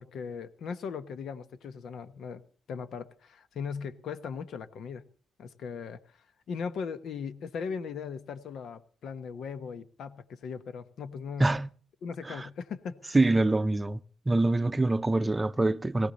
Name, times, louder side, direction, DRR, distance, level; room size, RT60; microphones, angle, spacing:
voice 1, 0.0-2.4 2.7-5.0 5.4-6.2 6.5-11.5 12.0-13.4, left 6 dB, 65° left, 1.1 m, -38 dB
voice 2, 13.1-14.0 14.3-16.1, right 2 dB, 20° right, 0.7 m, -25 dB
18.0 x 16.5 x 4.1 m
cardioid pair, 90°, 0 cm